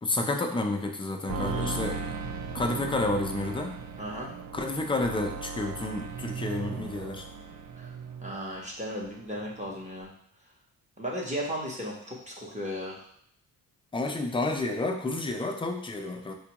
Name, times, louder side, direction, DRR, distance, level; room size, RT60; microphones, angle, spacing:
voice 1, 0.0-2.0 2.5-3.8 4.5-7.3 13.9-16.3, left 2 dB, 15° left, 3 dB, 0.3 m, -30 dB
voice 2, 1.2-1.8 4.0-4.3 7.8-7.9 8.2-10.1 11.0-13.0, equal, 20° right, -3 dB, 0.8 m, -35 dB
sound 1, 1.3-8.8 9.0-9.7 10.0-10.1, right 5 dB, 50° right, 0.4 m, -37 dB
4.3 x 2.2 x 2.9 m, 0.67 s
cardioid pair, 115°, 39 cm